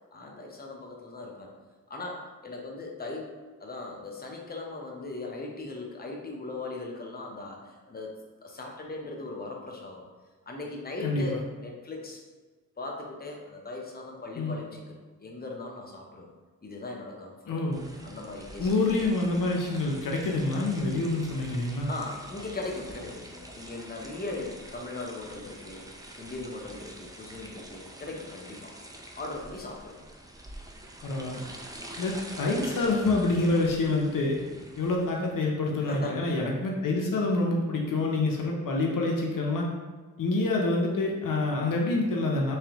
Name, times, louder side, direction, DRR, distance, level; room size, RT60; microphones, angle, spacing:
voice 1, 0.1-1.5 1.9-3.3 3.6-8.1 8.4-10.0 10.5-12.2 12.8-16.3 16.6-17.5 18.0-18.7 21.9-25.9 26.1-28.7 29.1-30.0 34.5-34.6 35.8-36.4, left 2 dB, 30° left, 0 dB, 0.8 m, -39 dB
voice 2, 11.0-11.4 14.4-14.6 17.5-17.8 18.6-21.9 31.0-31.4 32.0-34.4 34.8-39.7 40.2-42.6, left 2 dB, 75° left, -1 dB, 0.6 m, -27 dB
sound 1, 17.7-35.4, right 1 dB, 10° right, 0.5 m, -46 dB
3.4 x 3.2 x 3.0 m, 1.4 s
cardioid pair, 55°, 33 cm